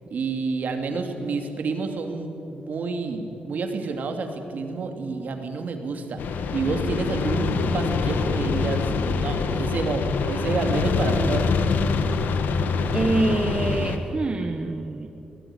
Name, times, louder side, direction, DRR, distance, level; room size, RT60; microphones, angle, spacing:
voice 1, 0.1-11.5, right 4 dB, 65° right, 5 dB, 2.7 m, -29 dB
sound 1, 6.2-14.0, left 4 dB, 85° left, 1.5 m, -25 dB
voice 2, 12.9-15.1, right 2 dB, 30° right, 5 dB, 1.2 m, -25 dB
23.0 x 17.0 x 10.0 m, 2.8 s
wide cardioid pair, 130°, 3 cm